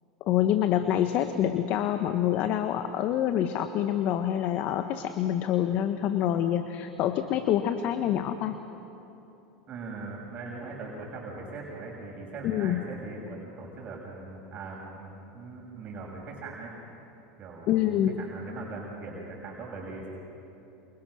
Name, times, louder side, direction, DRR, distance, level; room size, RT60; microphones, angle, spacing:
voice 1, 0.2-8.6 12.4-12.8 17.7-18.2, left 11 dB, 50° left, 8 dB, 1.3 m, -26 dB
voice 2, 9.7-16.7 17.4-20.1, right 3 dB, 40° right, -2 dB, 6.4 m, -40 dB
29.0 x 28.5 x 6.5 m, 3.0 s
hypercardioid pair, 95°, 4 cm